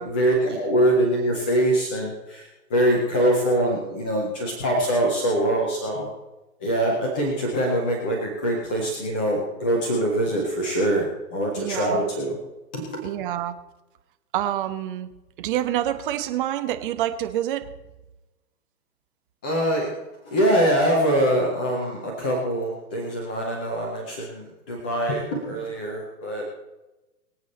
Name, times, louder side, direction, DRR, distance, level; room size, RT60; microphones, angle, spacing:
voice 1, 0.0-6.1 6.6-12.4 12.7-12.8 19.4-19.9 20.2-26.4, right 1 dB, 5° left, -1 dB, 0.4 m, -23 dB
voice 2, 11.6-12.1 13.0-13.6 14.3-15.1 15.4-17.7, right 12 dB, 30° right, 8 dB, 1.2 m, -27 dB
24.0 x 8.2 x 4.3 m, 1.0 s
figure-of-eight pair, 125°, 48 cm